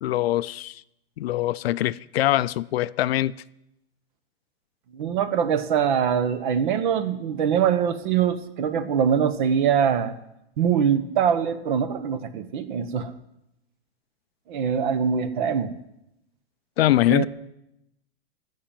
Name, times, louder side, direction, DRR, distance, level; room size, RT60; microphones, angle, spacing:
voice 1, 0.0-0.8 1.2-3.3 16.8-17.3, left 14 dB, 70° left, 0.5 m, -23 dB
voice 2, 4.9-10.1 10.6-13.1 14.5-15.7 17.1-17.3, right 8 dB, 50° right, 1.1 m, -23 dB
14.0 x 5.8 x 9.1 m
supercardioid pair, 165°, 32 cm